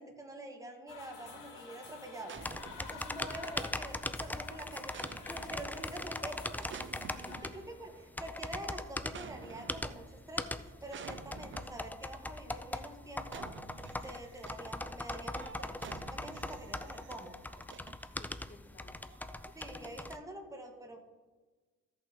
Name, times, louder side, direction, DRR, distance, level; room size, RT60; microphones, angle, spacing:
voice 1, 0.0-2.3 2.8-6.7 7.4-13.5 14.0-17.4 19.5-21.1, right 1 dB, 10° right, 2 dB, 1.7 m, -46 dB
sound 1, 0.9-7.4, left 5 dB, 85° left, 2.7 m, -51 dB
sound 2, 2.3-3.7 4.9-5.8 6.6-8.0 9.1-10.1 10.9-12.0 13.3-14.7 15.3-18.3 19.1-19.5, right 7 dB, 40° right, 0.6 m, -50 dB
sound 3, 2.4-20.2, left 2 dB, 5° left, 0.3 m, -41 dB
voice 2, 7.1-7.9 10.9-11.6 17.9-19.3, left 4 dB, 25° left, 4 dB, 0.9 m, -59 dB
15.0 x 5.7 x 3.7 m, 1.3 s
cardioid pair, 90°, 30 cm